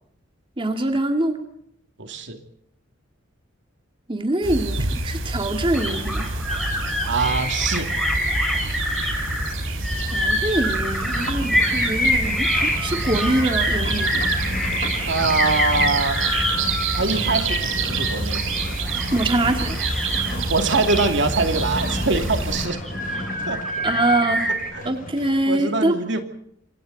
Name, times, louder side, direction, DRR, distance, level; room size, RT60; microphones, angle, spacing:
voice 1, 0.6-1.4 4.1-6.3 10.1-14.2 19.1-19.8 23.8-24.5 24.9-26.0, right 1 dB, 25° right, 5 dB, 2.2 m, -24 dB
voice 2, 2.0-2.4 7.1-7.9 13.0-13.1 15.1-16.2 17.0-18.5 20.5-22.8 23.5-23.6 24.7-24.9 25.5-26.2, right 3 dB, 65° right, 6 dB, 2.7 m, -23 dB
sound 1, 4.4-22.7, right 3 dB, 80° right, 4.0 m, -27 dB
sound 2, 5.7-24.7, equal, ahead, 5.5 m, -27 dB
Livestock farm animals working animals, 10.8-25.4, left 1 dB, 45° left, 7.9 m, -34 dB
27.5 x 24.5 x 4.1 m, 0.71 s
head